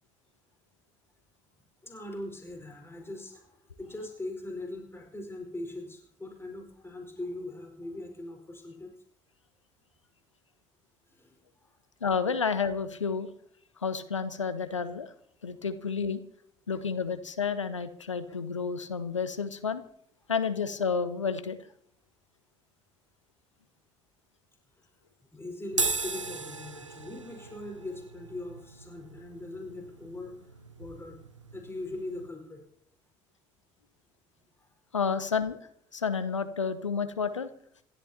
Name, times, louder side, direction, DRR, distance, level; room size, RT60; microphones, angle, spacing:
voice 1, 1.8-8.9 11.1-11.4 11.6-11.8 24.8-24.9 25.3-31.2 31.5-32.6 34.6-34.7, left 2 dB, 15° left, 2 dB, 4.5 m, -41 dB
voice 2, 12.0-13.3 13.8-15.1 15.4-16.2 16.7-19.8 20.3-21.6 34.9-35.6 35.9-37.5, left 5 dB, 85° left, 12 dB, 0.8 m, -30 dB
sound 1, 25.7-32.3, right 4 dB, 90° right, 0.6 m, -37 dB
27.0 x 13.5 x 2.8 m, 0.71 s
figure-of-eight pair, 50°, 15 cm